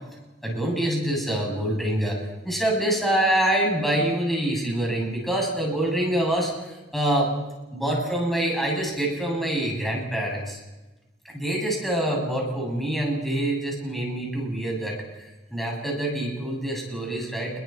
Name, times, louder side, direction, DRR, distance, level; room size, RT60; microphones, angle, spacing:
voice 1, 0.4-2.2 2.4-7.3 7.7-10.6 11.3-17.5, right 1 dB, ahead, -1 dB, 7.9 m, -26 dB
29.0 x 22.0 x 4.6 m, 1.1 s
head